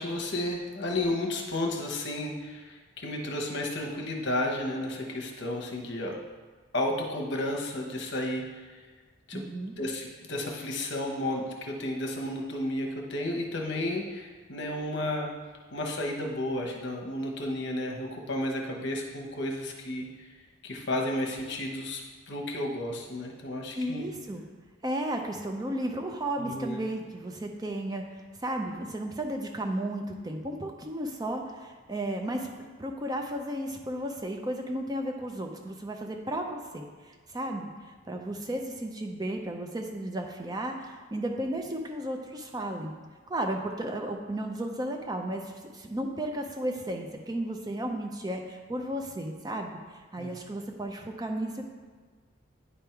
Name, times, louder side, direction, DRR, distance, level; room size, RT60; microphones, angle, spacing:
voice 1, 0.0-6.2 6.7-8.9 9.3-9.4 9.8-15.3 15.7-20.3 20.6-24.1 26.4-26.8 50.2-50.3, left 1 dB, 55° left, 0 dB, 1.0 m, -32 dB
voice 2, 9.3-9.7 23.7-24.4 24.8-42.9 43.3-51.7, right 1 dB, 20° right, 3 dB, 0.4 m, -34 dB
10.0 x 3.5 x 4.5 m, 1.5 s
head